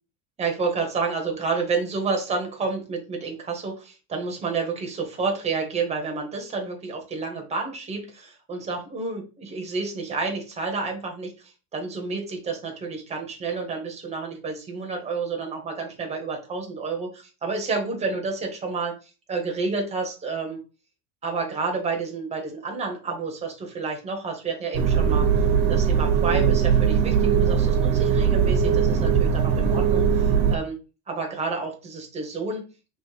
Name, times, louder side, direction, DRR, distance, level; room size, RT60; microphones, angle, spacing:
voice 1, 0.4-20.6 21.2-25.3 25.7-30.8 31.1-32.6, right 4 dB, 20° right, 2 dB, 1.0 m, -30 dB
sound 1, 24.7-30.6, right 7 dB, 60° right, 0.9 m, -20 dB
3.2 x 3.1 x 4.7 m, 0.33 s
cardioid pair, 175°, 36 cm